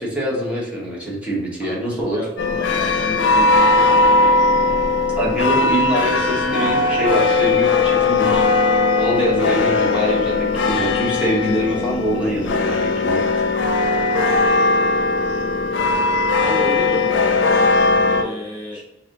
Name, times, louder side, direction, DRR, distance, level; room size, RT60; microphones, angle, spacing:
voice 1, 0.0-2.2 5.2-8.4 9.0-13.2 18.7-18.8, equal, 5° right, -5 dB, 1.1 m, -24 dB
voice 2, 2.1-4.4 16.4-17.2 18.1-18.8, left 1 dB, 25° left, -9 dB, 1.1 m, -31 dB
sound 1, 2.4-18.2, left 3 dB, 85° left, 0.4 m, -18 dB
3.2 x 2.7 x 3.8 m, 0.95 s
head